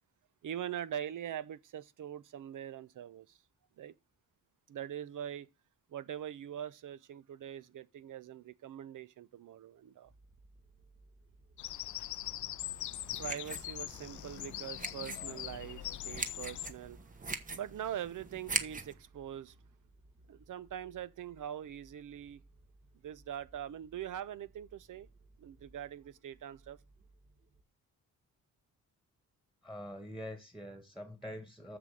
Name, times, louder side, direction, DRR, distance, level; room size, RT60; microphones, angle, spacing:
voice 1, 0.4-3.4 3.8-3.9 4.7-5.5 5.9-10.1 12.7-19.6 20.3-22.4 23.0-25.1 25.4-26.8, right 10 dB, 70° right, 1.0 m, -43 dB
sound 1, 10.0-27.6, right 2 dB, 40° right, 2.0 m, -62 dB
Bird vocalization bird call bird song, 11.6-16.7, left 13 dB, 65° left, 0.5 m, -41 dB
sound 2, 12.6-18.9, right 3 dB, 25° right, 1.2 m, -42 dB
voice 2, 29.6-31.8, equal, ahead, 1.9 m, -45 dB
7.5 x 7.0 x 7.6 m
cardioid pair, 105°, 33 cm